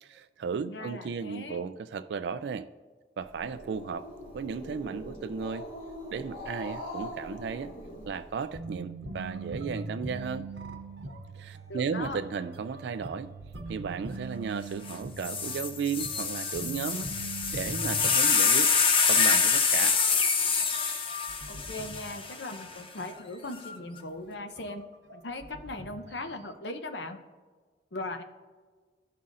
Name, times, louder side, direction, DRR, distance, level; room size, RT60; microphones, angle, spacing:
voice 1, 0.0-2.7 3.2-4.1 4.3-5.7 6.1-7.7 8.1-10.5 11.3-13.3 13.7-17.1 17.5-18.7 19.1-20.0, right 6 dB, 70° right, 10 dB, 0.3 m, -34 dB
voice 2, 0.7-1.6 11.7-12.2 21.5-24.8 25.1-27.2 27.9-28.2, left 2 dB, 80° left, 7 dB, 0.8 m, -39 dB
Growling, 3.2-8.6, left 1 dB, 55° left, 2.3 m, -42 dB
sound 1, 8.5-18.8 19.0-19.3 19.6-19.7 20.1-22.7 23.1-23.6 24.1-24.2 24.6-26.5, right 2 dB, 90° right, 1.0 m, -42 dB
sound 2, 14.9-15.0 15.2-22.6 23.5-24.0, left 5 dB, 30° left, 0.6 m, -26 dB
14.5 x 5.5 x 2.5 m, 1.4 s
head